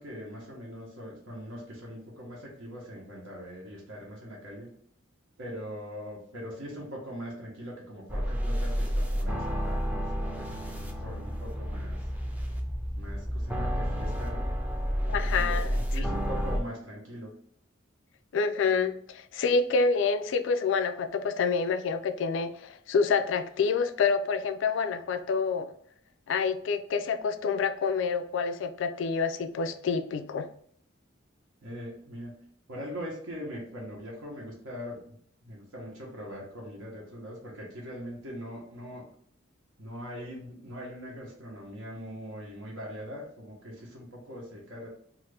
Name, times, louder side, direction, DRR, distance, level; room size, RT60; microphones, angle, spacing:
voice 1, 0.0-4.7 5.4-12.0 13.0-14.5 15.1-17.3 31.6-32.4 32.7-35.2 35.4-39.1 39.8-44.9, equal, 90° right, -3 dB, 0.9 m, -41 dB
sound 1, 8.1-16.6, equal, 10° right, 0.4 m, -30 dB
voice 2, 15.1-15.6 18.3-25.7 26.3-30.5, left 5 dB, 65° left, 8 dB, 0.3 m, -27 dB
2.7 x 2.5 x 3.2 m, 0.63 s
head